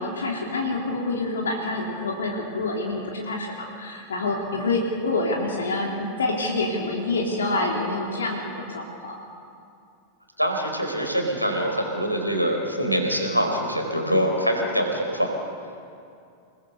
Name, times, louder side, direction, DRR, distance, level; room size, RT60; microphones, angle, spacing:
voice 1, 0.0-9.2, left 2 dB, 65° left, -1 dB, 3.1 m, -27 dB
voice 2, 10.4-15.3, equal, 90° left, 3 dB, 4.3 m, -24 dB
29.5 x 20.5 x 6.8 m, 2.5 s
figure-of-eight pair, 90°, 0 cm